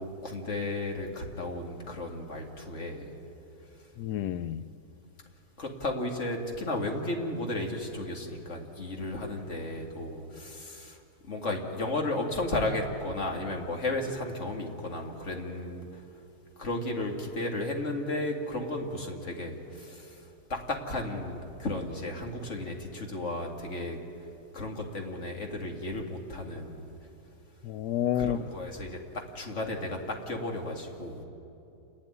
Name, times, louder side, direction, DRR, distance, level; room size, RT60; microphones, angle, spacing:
voice 1, 0.0-3.2 5.6-16.0 16.6-24.0 24.5-26.8 28.2-31.2, left 2 dB, 50° left, 2 dB, 2.4 m, -34 dB
voice 2, 4.0-4.6 27.6-28.4, left 11 dB, 85° left, 14 dB, 1.2 m, -29 dB
28.5 x 12.0 x 9.7 m, 2.8 s
omnidirectional pair, 1.7 m